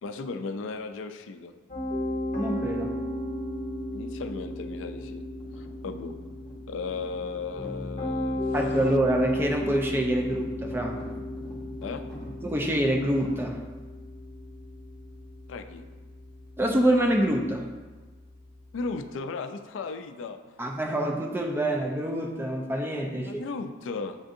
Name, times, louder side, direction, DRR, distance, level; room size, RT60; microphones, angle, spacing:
voice 1, 0.0-1.6 3.9-5.3 5.6-6.2 6.7-8.4 11.8-12.0 15.5-15.9 18.7-20.6 23.2-24.2, left 4 dB, 85° left, 8 dB, 0.4 m, -36 dB
Piano, 1.7-18.8, left 1 dB, 40° left, 0.8 m, -35 dB
voice 2, 2.3-3.0 8.5-11.0 12.4-13.6 16.6-17.7 20.6-23.4, right 1 dB, 10° right, 2 dB, 0.4 m, -26 dB
sound 1, 4.4-13.8, equal, 5° left, 1.0 m, -47 dB
7.8 x 2.6 x 2.5 m, 1.3 s
head